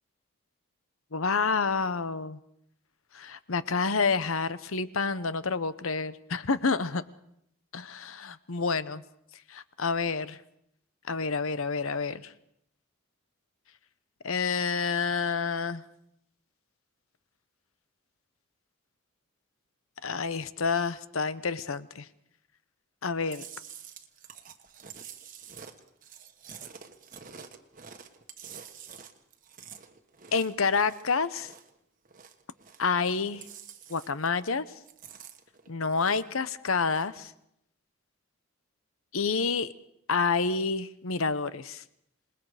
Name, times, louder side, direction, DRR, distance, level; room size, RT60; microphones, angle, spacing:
voice 1, 1.1-2.4 3.1-7.0 7.7-9.0 9.5-10.4 11.1-12.3 14.2-15.8 20.0-22.1 23.0-23.4 30.3-31.5 32.8-33.4 33.9-34.7 35.7-37.3 39.1-39.7 40.1-41.8, left 4 dB, 75° left, 14 dB, 0.9 m, -28 dB
Chewing mastication, 23.3-31.8 32.1-33.0 33.3-34.4 34.7-36.4 36.7-37.2, right 7 dB, 40° right, 1.4 m, -48 dB
27.0 x 20.5 x 5.0 m, 0.75 s
head